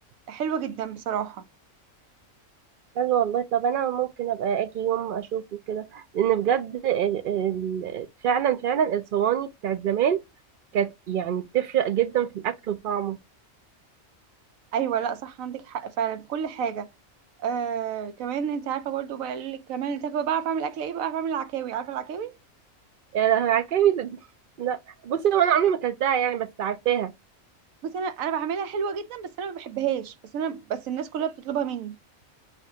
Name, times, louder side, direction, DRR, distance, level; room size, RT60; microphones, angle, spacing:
voice 1, 0.3-1.4 14.7-16.9 17.4-22.3 27.8-32.0, right 8 dB, 85° right, 1.1 m, -30 dB
voice 2, 3.0-5.4 5.7-10.2 10.7-13.2 23.1-24.2 24.6-24.8 25.0-27.1, right 9 dB, 60° right, 0.5 m, -25 dB
6.5 x 2.4 x 2.7 m
omnidirectional pair, 1.4 m